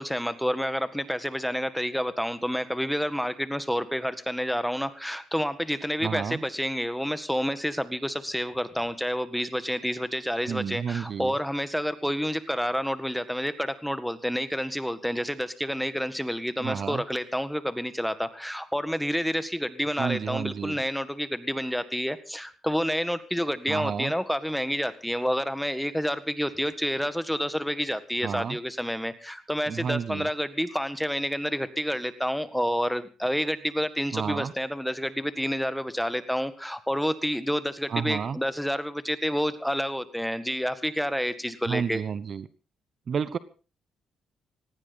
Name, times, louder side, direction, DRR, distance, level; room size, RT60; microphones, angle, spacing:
voice 1, 0.0-42.0, equal, ahead, 12 dB, 1.8 m, -29 dB
voice 2, 6.0-6.4 10.5-11.3 16.6-17.0 20.0-20.8 23.7-24.1 28.2-28.6 29.7-30.3 34.1-34.5 37.9-38.4 41.7-42.5 43.1-43.4, right 7 dB, 50° right, 15 dB, 1.1 m, -30 dB
19.0 x 16.0 x 4.1 m, 0.34 s
cardioid pair, 90°, 0 cm